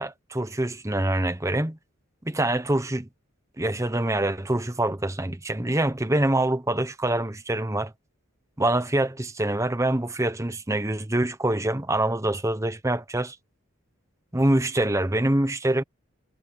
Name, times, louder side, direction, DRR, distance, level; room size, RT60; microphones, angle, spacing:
voice 1, 0.0-1.8 2.2-3.1 3.6-7.9 8.6-13.4 14.3-15.8, right 1 dB, 15° right, 0.9 m, -25 dB
head